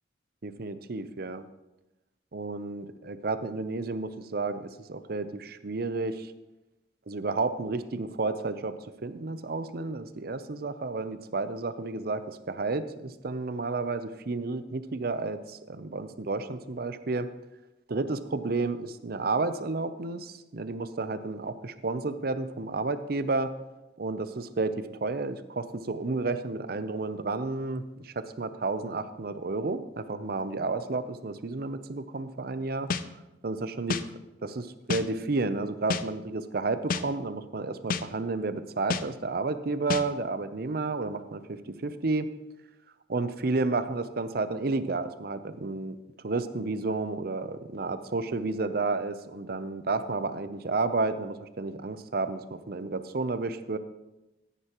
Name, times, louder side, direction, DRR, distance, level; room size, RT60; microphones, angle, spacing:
voice 1, 0.4-1.5 2.3-6.3 7.1-8.7 9.0-17.3 17.9-23.5 24.0-32.9 33.4-34.1 34.4-42.3 43.1-46.0 46.2-53.8, right 3 dB, 60° right, 12 dB, 0.6 m, -31 dB
sound 1, 32.9-33.0 33.9-34.0 34.9-35.0 35.9-36.0 36.9-37.0 37.9-38.0 38.9-39.0 39.9-40.0, left 5 dB, 50° left, 0.5 m, -28 dB
14.5 x 9.9 x 3.0 m, 1.0 s
head